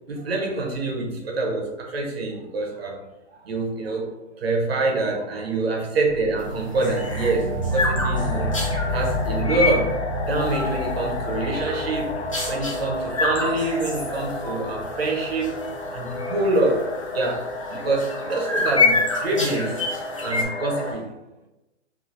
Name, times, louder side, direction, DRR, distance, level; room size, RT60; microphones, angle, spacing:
voice 1, 0.1-3.0 3.3-8.5 8.9-12.1 12.5-15.6 15.9-19.8 20.2-21.1, right 2 dB, 55° right, 0 dB, 0.8 m, -26 dB
sound 1, 6.1-17.1, left 1 dB, 30° right, 0.4 m, -31 dB
sound 2, 6.5-8.9 9.4-9.8 10.3-10.9 11.2-11.9 12.3-12.8 13.1-14.6 14.9-15.0 15.4-15.7 16.2-16.3 17.7-20.4, left 3 dB, 30° left, 0.4 m, -26 dB
sound 3, 8.1-20.9, left 2 dB, 65° left, 0.7 m, -32 dB
2.7 x 2.6 x 2.5 m, 1.0 s
hypercardioid pair, 170°, 37 cm